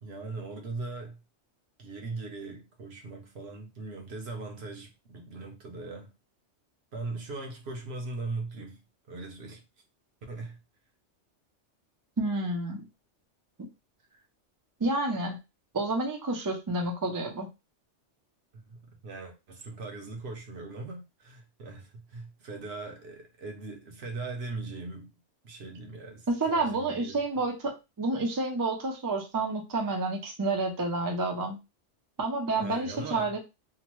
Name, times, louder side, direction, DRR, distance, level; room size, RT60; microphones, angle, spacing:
voice 1, 0.0-1.2 1.8-6.1 6.9-8.8 9.1-9.6 10.3-10.6 18.5-25.2 25.4-27.2 32.6-33.3, right 3 dB, 65° right, 1.0 m, -40 dB
voice 2, 12.2-12.8 14.8-15.4 15.7-17.5 26.3-31.6 32.2-33.4, right 2 dB, 30° right, 0.4 m, -29 dB
2.8 x 2.1 x 3.0 m
omnidirectional pair, 1.2 m